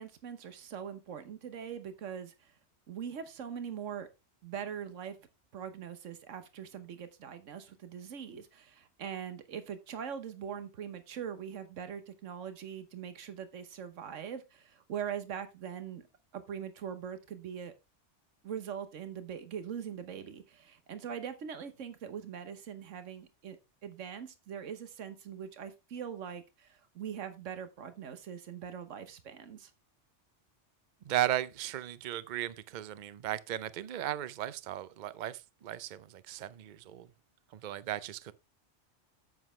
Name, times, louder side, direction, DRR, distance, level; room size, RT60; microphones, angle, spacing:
voice 1, 0.0-2.5 2.9-4.1 4.4-5.2 5.5-16.1 16.3-17.7 18.4-23.6 23.8-29.7, right 8 dB, 85° right, 1.3 m, -42 dB
voice 2, 31.1-37.1 37.5-38.3, right 13 dB, 50° right, 0.6 m, -36 dB
9.3 x 7.9 x 3.2 m
omnidirectional pair, 1.3 m